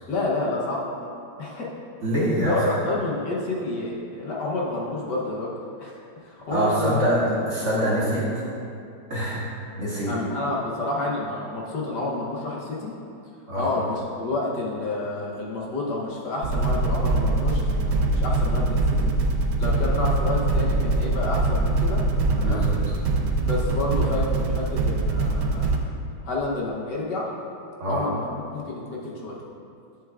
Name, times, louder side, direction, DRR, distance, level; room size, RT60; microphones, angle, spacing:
voice 1, 0.1-1.1 1.4-1.7 2.4-5.5 5.8-7.0 7.7-7.9 10.1-12.9 13.5-19.1 19.6-22.1 22.4-22.7 23.4-25.7 26.2-27.3 27.9-29.4, left 2 dB, 65° left, -3 dB, 1.4 m, -29 dB
voice 2, 2.0-2.7 6.5-8.4 9.1-9.5 9.8-10.1 13.5-13.7 22.4-22.7 27.8-28.0, equal, 40° right, -7 dB, 1.3 m, -24 dB
sound 1, 16.4-25.8, right 2 dB, 90° right, 1.5 m, -23 dB
11.0 x 6.9 x 2.3 m, 2.5 s
omnidirectional pair, 2.2 m